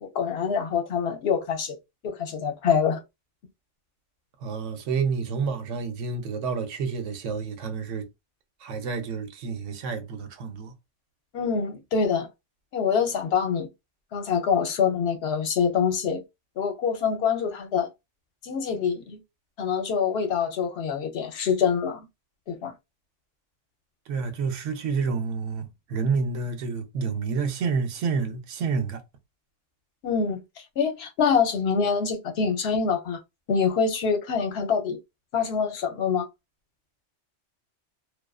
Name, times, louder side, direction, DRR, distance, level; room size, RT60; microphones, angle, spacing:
voice 1, 0.0-1.8 2.0-3.0 11.3-12.3 12.7-13.7 14.1-16.2 16.6-17.9 18.4-19.2 19.6-22.0 22.5-22.7 30.0-30.4 30.8-33.2 33.5-35.0 35.3-36.3, left 6 dB, 65° left, 0.8 m, -25 dB
voice 2, 4.4-8.1 8.6-10.7 24.1-29.0, right 5 dB, 85° right, 0.9 m, -29 dB
2.3 x 2.3 x 2.3 m
omnidirectional pair, 1.2 m